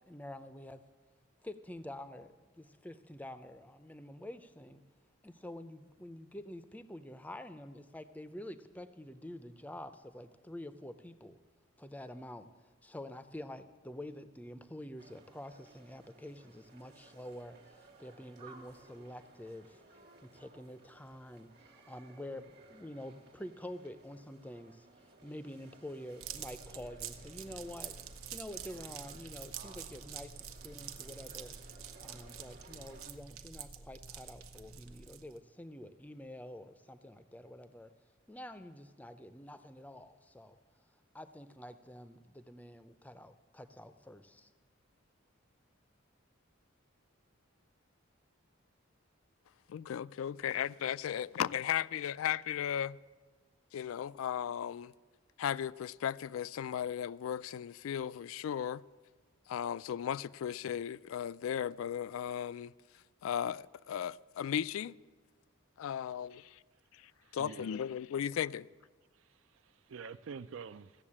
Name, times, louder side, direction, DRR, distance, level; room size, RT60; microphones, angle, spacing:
voice 1, 0.1-0.8 1.4-4.8 5.2-11.4 11.8-12.5 12.8-19.8 20.2-28.0 28.3-31.6 32.0-37.9 38.3-40.6 41.1-44.5, left 1 dB, 5° left, 0.5 m, -48 dB
sound 1, 15.0-33.1, right 2 dB, 50° right, 1.4 m, -59 dB
sound 2, 26.2-35.4, right 8 dB, 80° right, 0.8 m, -47 dB
voice 2, 49.7-53.0 53.7-54.9 55.4-58.8 59.5-62.7 63.2-64.9 65.8-66.6 67.3-68.7, left 9 dB, 75° left, 0.3 m, -36 dB
voice 3, 67.2-67.8 69.6-71.0, right 5 dB, 65° right, 0.4 m, -47 dB
15.5 x 7.1 x 8.6 m
head